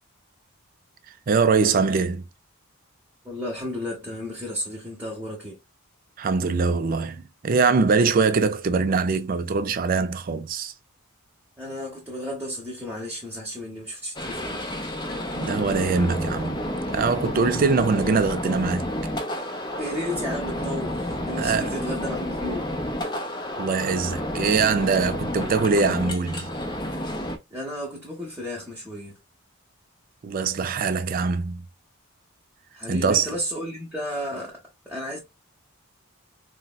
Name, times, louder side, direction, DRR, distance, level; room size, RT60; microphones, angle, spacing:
voice 1, 1.3-2.2 6.2-10.7 15.4-16.6 16.9-18.9 21.4-21.7 23.6-26.5 30.2-31.6 32.9-33.3, right 4 dB, 40° right, 0.3 m, -23 dB
voice 2, 3.2-5.6 11.6-14.6 19.8-22.7 27.5-29.2 32.7-35.2, left 1 dB, 10° right, 0.8 m, -33 dB
sound 1, 14.2-27.4, left 1 dB, 20° left, 0.6 m, -30 dB
4.0 x 2.1 x 2.2 m
head